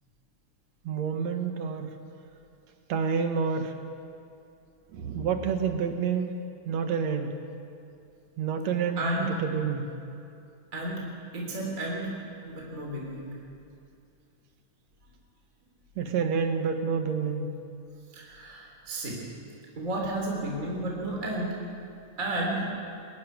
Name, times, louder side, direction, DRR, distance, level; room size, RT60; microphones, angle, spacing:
voice 1, 0.8-1.9 2.9-3.8 4.9-6.3 6.7-7.4 8.4-9.9 16.0-17.5, right 6 dB, 65° right, 6 dB, 2.5 m, -28 dB
voice 2, 9.0-9.3 10.7-11.0 11.3-12.2 12.4-13.4 18.1-19.2 19.8-21.6 22.2-22.7, right 1 dB, 25° right, -2 dB, 3.7 m, -32 dB
21.5 x 14.5 x 9.8 m, 2.5 s
omnidirectional pair, 3.5 m